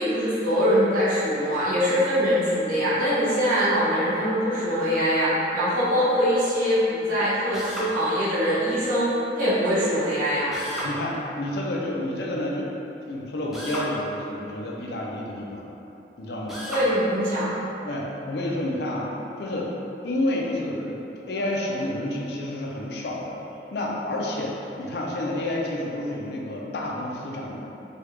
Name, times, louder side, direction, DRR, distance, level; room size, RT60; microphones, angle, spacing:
voice 1, 0.0-10.5 16.7-17.5, equal, 50° right, -12 dB, 0.8 m, -23 dB
Drill, 7.5-7.9 10.5-10.9 13.5-13.9 16.5-16.9, equal, ahead, 0.4 m, -33 dB
voice 2, 10.8-12.7 13.1-15.6 16.2-16.6 17.8-19.1 19.4-19.7 20.0-23.4 23.7-27.6, left 1 dB, 70° left, -2 dB, 0.4 m, -29 dB
3.2 x 2.3 x 3.1 m, 2.9 s
head